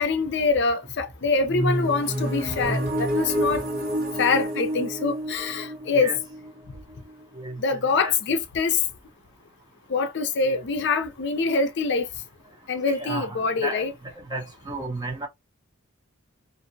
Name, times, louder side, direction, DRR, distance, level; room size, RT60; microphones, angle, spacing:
voice 1, 0.0-3.6 4.2-6.1 7.6-8.8 9.9-12.1 12.7-13.9, left 4 dB, 55° left, 0.5 m, -24 dB
sound 1, 1.5-7.2, right 1 dB, 50° right, 1.0 m, -28 dB
voice 2, 7.4-8.1 10.4-10.6 12.9-13.9 14.3-15.3, right 2 dB, 20° right, 0.7 m, -33 dB
2.5 x 2.0 x 2.6 m
head